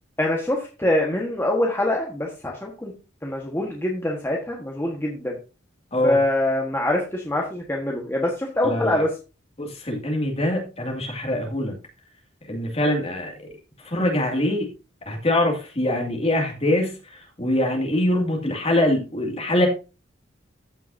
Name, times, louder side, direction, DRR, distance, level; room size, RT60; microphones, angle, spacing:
voice 1, 0.2-2.9 3.2-5.4 6.0-9.1, left 1 dB, 10° left, -1 dB, 1.4 m, -24 dB
voice 2, 8.6-9.0 9.6-11.7 12.5-13.3 13.8-14.7 15.1-19.7, left 1 dB, 30° left, 1 dB, 2.3 m, -23 dB
14.5 x 5.8 x 2.7 m, 0.31 s
head